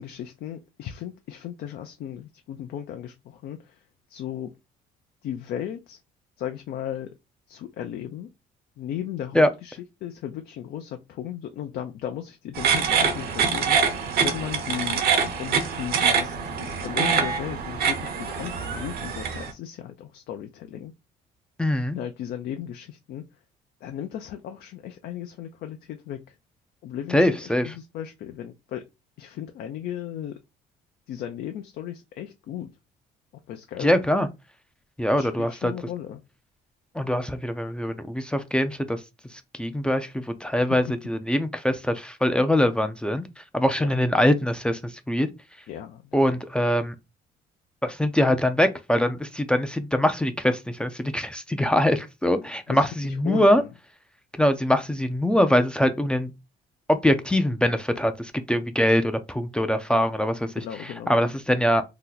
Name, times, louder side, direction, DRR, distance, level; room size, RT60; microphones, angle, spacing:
voice 1, 0.0-3.8 4.1-4.5 5.2-6.0 6.4-7.1 7.5-8.3 8.8-13.8 14.1-15.0 15.4-20.9 21.9-23.2 23.8-26.3 26.8-28.8 29.2-30.3 31.1-32.7 33.5-33.9 35.0-36.2 43.8-43.9 45.7-46.2 52.7-53.7 60.6-61.3, left 10 dB, 65° left, 0.4 m, -36 dB
sound 1, 12.5-19.5, right 6 dB, 65° right, 0.8 m, -25 dB
voice 2, 21.6-22.0 27.1-27.8 33.8-34.3 35.0-35.7 37.0-39.0 39.6-43.2 43.5-44.8 45.1-45.3 46.1-46.9 47.8-53.6 54.4-56.3 56.9-60.5 60.8-61.8, left 1 dB, 5° left, 0.4 m, -23 dB
2.8 x 2.1 x 3.8 m
cardioid pair, 110°, 17 cm